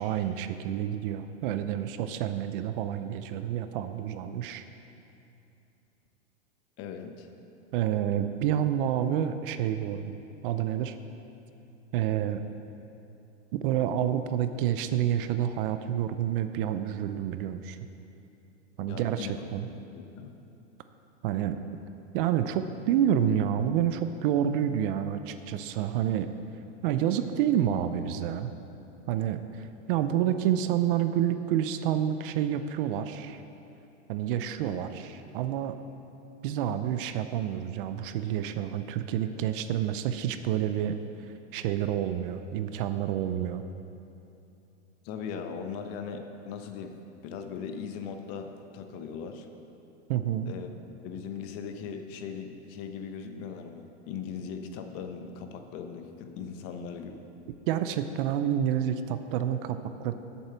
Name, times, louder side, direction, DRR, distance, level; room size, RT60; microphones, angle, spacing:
voice 1, 0.0-4.6 7.7-10.2 10.4-11.0 11.9-12.4 13.5-17.8 18.8-19.7 21.2-21.6 22.1-26.3 26.8-28.5 29.1-33.4 34.1-35.8 36.4-41.0 41.5-43.6 50.1-50.5 57.7-60.1, right 10 dB, 50° right, 10 dB, 0.6 m, -28 dB
voice 2, 6.8-7.3 18.9-20.4 45.0-47.0 47.2-49.5 50.5-50.7 51.0-57.2, left 6 dB, 40° left, 6 dB, 0.9 m, -39 dB
8.4 x 7.4 x 6.9 m, 2.8 s
hypercardioid pair, 130°, 35 cm